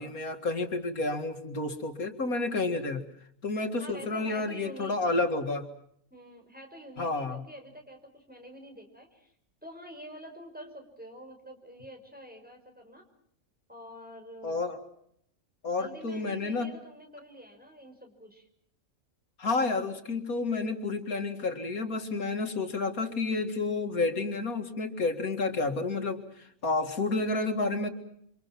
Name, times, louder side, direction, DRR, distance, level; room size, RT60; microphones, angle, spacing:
voice 1, 0.0-3.0 3.4-5.7 7.0-7.4 14.4-14.8 15.6-16.7 19.4-27.9, left 3 dB, 90° left, 5 dB, 2.6 m, -30 dB
voice 2, 3.8-5.2 6.1-9.3 9.6-13.1 13.7-14.7 15.8-18.5, equal, 5° right, 2 dB, 5.5 m, -47 dB
29.0 x 25.5 x 6.0 m, 0.71 s
omnidirectional pair, 1.5 m